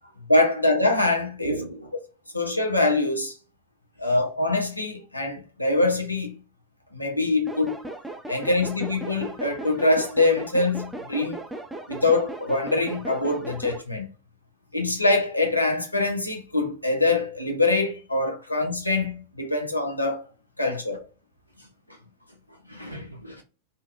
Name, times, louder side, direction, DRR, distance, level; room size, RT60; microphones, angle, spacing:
voice 1, 0.3-1.5 2.3-3.3 4.0-6.4 6.9-7.8 8.3-11.4 11.9-14.1 14.7-20.2 20.6-21.0, left 2 dB, 85° left, 0.6 m, -24 dB
voice 2, 1.4-1.9 4.0-4.2 8.3-8.8 20.9-21.1 21.5-23.4, right 2 dB, 90° right, 0.4 m, -40 dB
sound 1, 7.5-13.8, right 2 dB, 5° right, 0.4 m, -37 dB
2.6 x 2.1 x 2.4 m
figure-of-eight pair, 90°, 0 cm